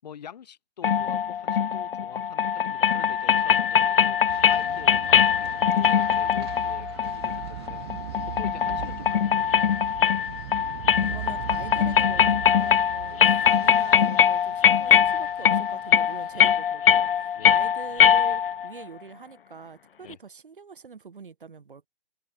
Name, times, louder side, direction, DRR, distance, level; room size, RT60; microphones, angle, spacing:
voice 1, 0.0-7.9 8.3-9.9 17.4-17.6 20.0-20.2, left 8 dB, 45° left, 6.7 m, -46 dB
sound 1, 0.8-18.7, left 8 dB, 65° left, 0.4 m, -22 dB
sound 2, 4.3-16.6, right 15 dB, 25° right, 1.4 m, -40 dB
voice 2, 11.0-21.9, right 5 dB, 60° right, 7.0 m, -44 dB
figure-of-eight pair, 135°, 30 cm